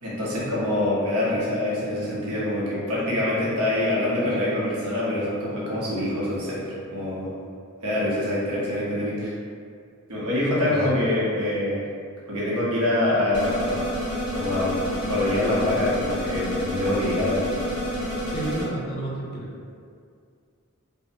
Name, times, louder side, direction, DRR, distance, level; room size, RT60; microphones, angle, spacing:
voice 1, 0.0-7.3 7.8-9.3 10.1-11.8 12.3-13.8 14.3-14.8 15.1-17.5, left 1 dB, 85° right, -7 dB, 0.8 m, -25 dB
voice 2, 10.6-11.0 18.3-19.7, right 1 dB, 45° left, -3 dB, 0.4 m, -32 dB
sound 1, 13.3-18.6, equal, 90° left, 0.7 m, -29 dB
2.5 x 2.0 x 2.6 m, 2.3 s
head